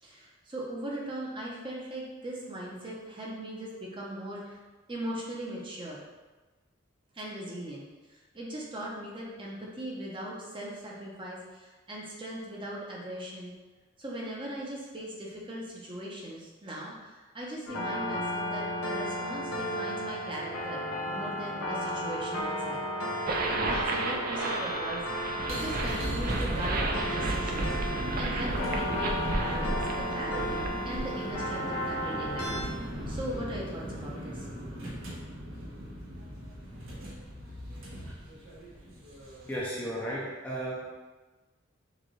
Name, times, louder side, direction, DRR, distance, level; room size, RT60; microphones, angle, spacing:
voice 1, 0.0-4.6 4.9-6.0 7.1-13.5 14.0-27.7 28.2-34.4, right 1 dB, 25° right, -4 dB, 0.8 m, -39 dB
sound 1, 17.7-32.6, equal, 85° left, 0.8 m, -34 dB
sound 2, 23.3-31.3, right 2 dB, 45° right, 0.4 m, -33 dB
sound 3, 25.2-39.7, equal, 75° right, 1.3 m, -37 dB
voice 2, 39.5-40.9, right 1 dB, 5° left, -7 dB, 0.6 m, -34 dB
6.7 x 2.5 x 3.1 m, 1.2 s
head